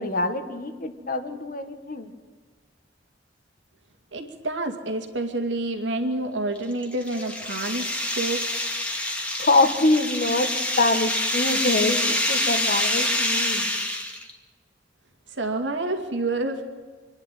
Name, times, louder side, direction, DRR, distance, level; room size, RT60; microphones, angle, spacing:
voice 1, 0.0-2.1 9.4-10.5 10.8-13.7, left 2 dB, 50° left, 7 dB, 1.8 m, -24 dB
voice 2, 4.1-8.4 15.3-16.6, right 2 dB, 80° right, 5 dB, 2.5 m, -28 dB
sound 1, 6.5-14.3, left 1 dB, 5° left, 2.0 m, -26 dB
27.0 x 11.0 x 9.2 m, 1.5 s
head